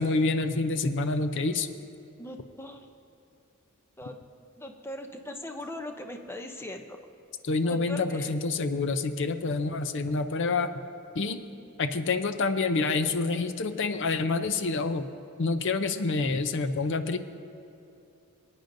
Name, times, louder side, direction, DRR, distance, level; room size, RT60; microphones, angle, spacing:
voice 1, 0.0-1.7 7.4-10.7 11.1-11.4 11.8-15.1 15.4-17.2, left 3 dB, 55° left, 10 dB, 0.5 m, -27 dB
voice 2, 2.2-2.9 4.0-4.2 4.6-7.0 7.7-8.3, left 1 dB, 10° left, 5 dB, 0.6 m, -40 dB
22.0 x 9.1 x 2.6 m, 2.8 s
head